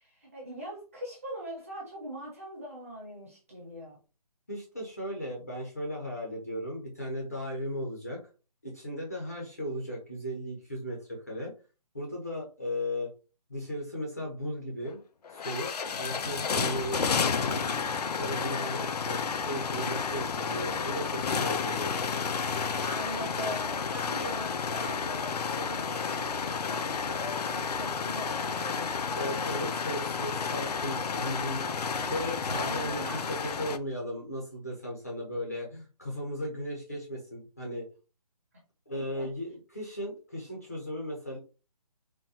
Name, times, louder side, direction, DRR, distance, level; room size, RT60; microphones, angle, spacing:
voice 1, 0.0-4.0 22.8-29.7 30.5-31.2 31.6-31.8 32.5-33.7 38.9-39.3, equal, 20° right, -4 dB, 0.9 m, -41 dB
voice 2, 4.5-8.2 8.6-11.5 11.9-13.1 13.5-15.0 15.3-15.7 16.0-17.6 18.1-22.2 29.1-31.7 32.1-37.9 38.9-41.4, equal, 25° left, -3 dB, 0.6 m, -36 dB
sound 1, 14.9-15.0 15.2-33.8, left 5 dB, 75° left, 0.4 m, -31 dB
3.8 x 2.1 x 2.7 m, 0.33 s
hypercardioid pair, 180°, 20 cm